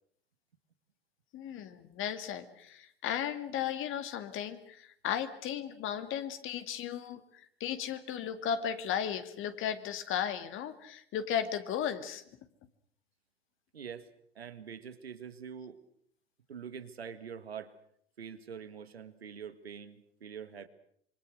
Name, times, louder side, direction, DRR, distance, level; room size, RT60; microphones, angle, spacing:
voice 1, 1.3-12.2, left 9 dB, 40° left, 10 dB, 2.2 m, -35 dB
voice 2, 13.7-15.8 16.5-17.7 18.2-20.7, right 7 dB, 85° right, 11 dB, 1.9 m, -45 dB
27.0 x 24.0 x 6.4 m, 0.66 s
figure-of-eight pair, 85°, 30 cm